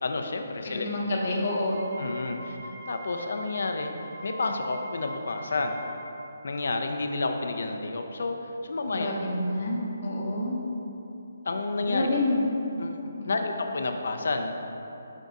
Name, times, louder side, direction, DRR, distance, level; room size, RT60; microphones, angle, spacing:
voice 1, 0.0-0.9 2.0-2.6 2.9-3.9 4.2-5.8 6.4-9.1 11.4-12.1 12.8-13.0 13.3-14.6, left 3 dB, 70° left, 5 dB, 0.4 m, -30 dB
voice 2, 0.6-1.8 2.3-2.5 8.9-10.6 11.9-12.5 13.2-13.3, left 1 dB, 50° left, -3 dB, 0.7 m, -28 dB
Wind instrument woodwind instrument, 1.6-6.1, equal, 75° right, 1.4 m, -43 dB
5.2 x 2.4 x 3.9 m, 3.0 s
hypercardioid pair, 160°, 0 cm